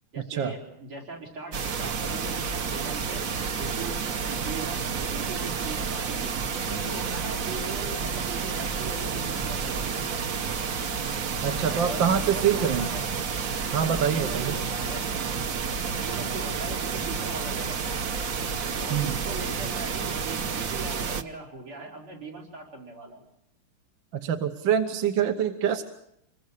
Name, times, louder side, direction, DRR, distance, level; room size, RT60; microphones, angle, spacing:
voice 1, 0.1-4.0 4.3-10.2 11.6-13.0 14.1-15.4 15.8-18.1 18.8-23.2, right 3 dB, 80° right, 2 dB, 5.7 m, -40 dB
sound 1, 1.5-21.2, right 5 dB, 50° right, 1.2 m, -30 dB
voice 2, 11.4-12.9 13.7-14.6 18.9-19.2 24.1-25.8, right 8 dB, 65° right, 5 dB, 1.8 m, -25 dB
26.5 x 21.5 x 6.6 m, 0.76 s
omnidirectional pair, 2.3 m